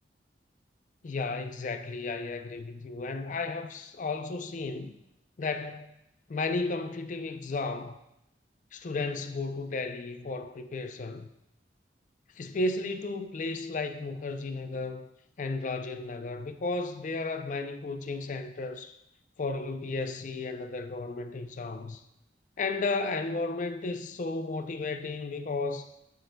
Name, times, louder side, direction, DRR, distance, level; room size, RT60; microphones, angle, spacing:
voice 1, 1.0-4.9 5.4-5.9 6.3-8.0 8.7-11.3 12.4-15.1 15.4-19.0 19.4-22.0 22.6-25.9, left 3 dB, 45° left, 0.4 m, -33 dB
7.8 x 6.6 x 2.2 m
head